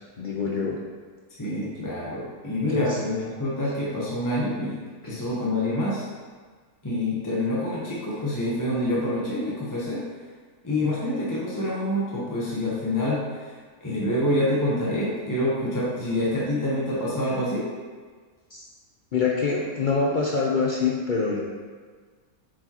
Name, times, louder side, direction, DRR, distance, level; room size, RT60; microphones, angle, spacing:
voice 1, 0.2-0.8 2.7-3.0 5.0-5.3 18.5-18.6 19.1-21.4, left 4 dB, 65° left, -3 dB, 0.5 m, -25 dB
voice 2, 1.4-6.1 6.8-10.0 10.6-13.5 13.8-17.7, left 1 dB, 15° left, -6 dB, 0.8 m, -27 dB
7.2 x 4.7 x 2.9 m, 1.5 s
omnidirectional pair, 1.5 m